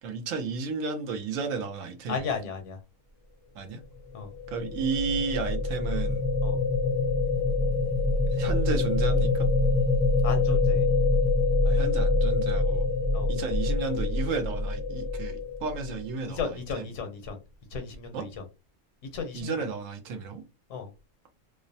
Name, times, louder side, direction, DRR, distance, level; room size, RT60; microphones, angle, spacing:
voice 1, 0.0-2.3 3.5-3.8 4.5-6.3 8.3-9.5 11.6-12.9 13.3-16.9 18.1-18.3 19.3-20.4, right 5 dB, 85° right, 1.0 m, -33 dB
voice 2, 2.1-2.8 4.1-4.3 6.4-6.6 10.2-10.9 13.1-13.3 16.2-17.4 17.7-18.3 19.1-19.5 20.7-20.9, left 5 dB, 75° left, 0.9 m, -34 dB
sound 1, 4.1-16.3, left 3 dB, 35° left, 0.6 m, -25 dB
2.4 x 2.0 x 2.6 m
omnidirectional pair, 1.3 m